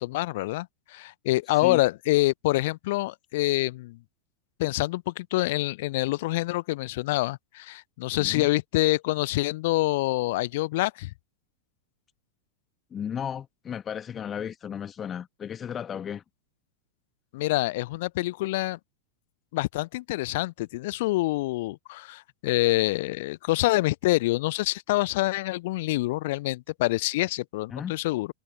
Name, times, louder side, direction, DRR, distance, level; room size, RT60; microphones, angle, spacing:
voice 1, 0.0-4.0 4.6-11.1 17.3-18.8 19.5-28.3, left 19 dB, 50° left, 0.6 m, -26 dB
voice 2, 1.5-1.8 8.2-8.5 12.9-16.2 27.7-27.9, left 8 dB, 25° left, 1.6 m, -34 dB
figure-of-eight pair, 90°, 0 cm